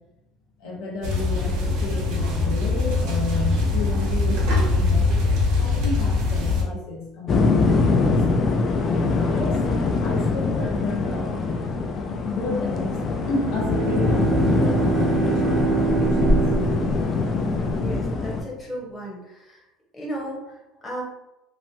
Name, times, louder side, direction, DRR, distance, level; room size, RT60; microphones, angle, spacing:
voice 1, 0.6-8.2 8.9-9.6 10.0-11.4 11.9-13.0 13.3-16.5, left 3 dB, 70° left, -3 dB, 0.9 m, -31 dB
sound 1, 1.0-6.6, left 3 dB, 75° right, 0.9 m, -22 dB
sound 2, 7.3-18.4, left 3 dB, 35° left, 0.3 m, -23 dB
Bowed string instrument, 13.1-17.9, right 7 dB, 50° right, 0.3 m, -26 dB
voice 2, 17.8-19.6 19.9-21.0, equal, 15° left, -4 dB, 0.9 m, -35 dB
2.9 x 2.2 x 2.8 m, 0.95 s
cardioid pair, 140°, 0 cm